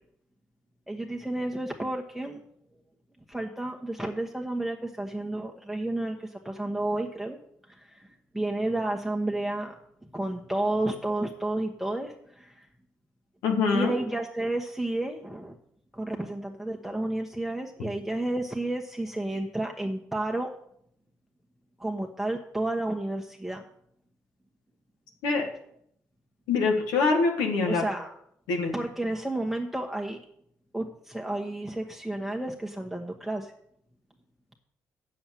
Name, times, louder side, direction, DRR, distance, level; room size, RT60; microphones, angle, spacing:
voice 1, 0.9-2.4 3.3-7.4 7.7-9.7 10.1-12.7 13.7-15.6 15.9-20.5 21.8-23.6 27.7-28.1 28.7-30.2 30.7-33.5, right 1 dB, ahead, 1 dB, 1.2 m, -31 dB
voice 2, 13.4-13.9 25.2-25.5 26.5-27.8 28.5-28.7, left 4 dB, 90° left, 2 dB, 1.6 m, -24 dB
7.7 x 7.2 x 7.6 m, 0.70 s
supercardioid pair, 55°, 7 cm